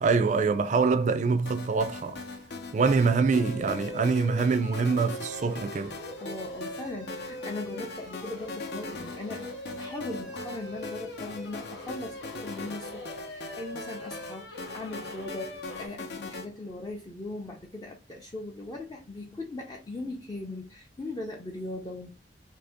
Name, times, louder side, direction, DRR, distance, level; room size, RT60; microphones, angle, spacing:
voice 1, 0.0-2.2 2.7-6.0, right 4 dB, 40° right, 0.4 m, -25 dB
sound 1, 1.5-16.5, left 3 dB, 65° left, 0.7 m, -41 dB
sound 2, 2.8-15.9, left 1 dB, 80° left, 1.1 m, -42 dB
voice 2, 6.2-22.1, left 2 dB, 25° left, 0.5 m, -39 dB
2.7 x 2.7 x 3.5 m
head